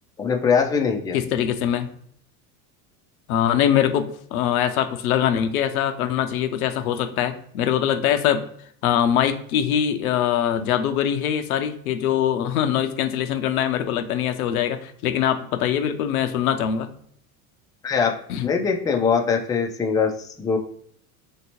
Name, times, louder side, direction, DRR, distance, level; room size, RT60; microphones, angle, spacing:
voice 1, 0.2-1.2 17.8-20.6, left 6 dB, 10° left, 2 dB, 0.4 m, -22 dB
voice 2, 1.1-1.9 3.3-8.4 8.8-16.9 18.3-18.4, left 9 dB, 85° left, 9 dB, 0.6 m, -23 dB
3.3 x 2.8 x 2.9 m, 0.65 s
hypercardioid pair, 95°, 42 cm